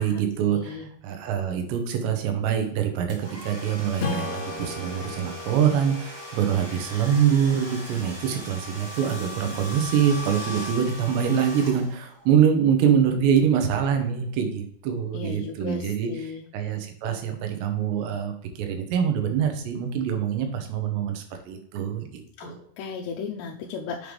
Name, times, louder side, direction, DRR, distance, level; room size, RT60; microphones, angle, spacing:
voice 1, 0.0-22.6, right 8 dB, 90° right, 5 dB, 3.2 m, -25 dB
voice 2, 0.5-0.9 15.1-16.4 22.4-24.1, left 5 dB, 85° left, 0 dB, 2.8 m, -36 dB
Domestic sounds home sounds, 3.1-12.2, left 1 dB, 25° right, 0.5 m, -39 dB
Strum, 4.0-8.9, left 2 dB, 60° left, 2.2 m, -36 dB
7.7 x 5.3 x 3.2 m, 0.64 s
omnidirectional pair, 4.8 m